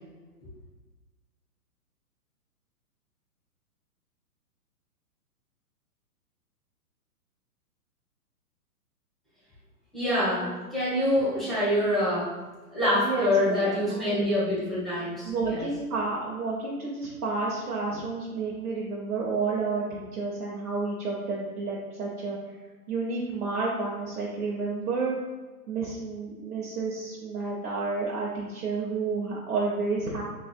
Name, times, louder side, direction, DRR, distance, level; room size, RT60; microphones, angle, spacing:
voice 1, 9.9-12.4 12.7-15.6, left 1 dB, ahead, -11 dB, 0.9 m, -26 dB
voice 2, 13.0-14.2 15.2-22.4 22.9-25.2 25.7-30.2, right 4 dB, 75° right, -5 dB, 0.9 m, -30 dB
3.5 x 3.2 x 2.2 m, 1.3 s
hypercardioid pair, 135°, 46 cm